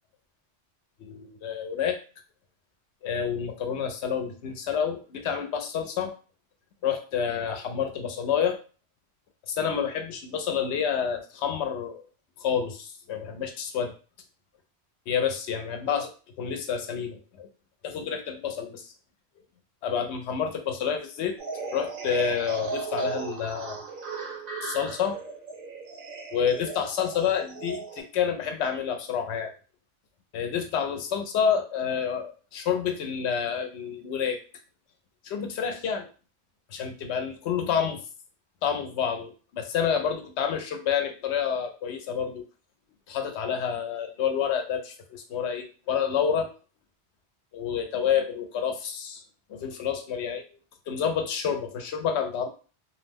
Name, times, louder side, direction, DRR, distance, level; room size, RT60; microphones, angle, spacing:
voice 1, 1.0-2.0 3.0-6.1 6.8-8.6 9.5-12.0 12.4-13.9 15.1-16.1 16.4-17.5 17.8-18.9 19.8-21.3 21.7-23.8 24.6-25.2 26.3-29.5 30.3-34.4 35.2-36.1 36.7-38.0 38.6-42.4 43.1-46.5 47.5-49.2 49.5-50.4 50.9-52.5, left 7 dB, 80° left, 5 dB, 0.9 m, -28 dB
sound 1, 21.4-28.0, right 4 dB, 60° right, 0.8 m, -36 dB
2.5 x 2.0 x 3.3 m, 0.36 s
omnidirectional pair, 1.1 m